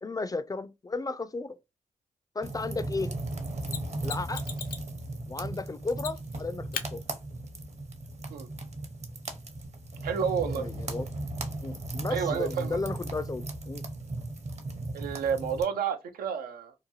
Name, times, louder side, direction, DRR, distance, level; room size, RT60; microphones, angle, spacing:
voice 1, 0.0-1.6 2.4-3.1 4.0-4.4 5.3-7.0 10.4-11.1 11.6-13.8, left 3 dB, 25° left, 0.3 m, -34 dB
sound 1, 2.4-15.6, right 2 dB, 50° right, 0.8 m, -36 dB
Mechanisms, 3.7-4.9 6.0-6.4 6.7-6.9 9.6-9.7, left 7 dB, 80° left, 0.5 m, -37 dB
voice 2, 10.0-10.7 12.1-12.8 14.9-16.7, right 7 dB, 90° right, 0.4 m, -30 dB
2.8 x 2.2 x 2.6 m
supercardioid pair, 45°, 15 cm